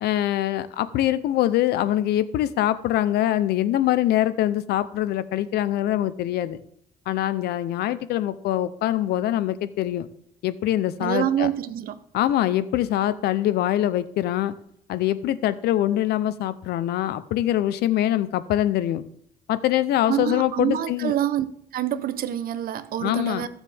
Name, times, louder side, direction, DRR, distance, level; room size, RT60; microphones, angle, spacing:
voice 1, 0.0-6.6 7.1-10.1 10.4-11.5 12.1-14.5 14.9-19.0 19.5-21.1 23.0-23.5, left 13 dB, 75° left, 0.7 m, -23 dB
voice 2, 11.0-12.0 20.1-21.5 21.7-23.5, right 11 dB, 60° right, 0.8 m, -26 dB
14.5 x 7.2 x 3.5 m
cardioid pair, 110°, 17 cm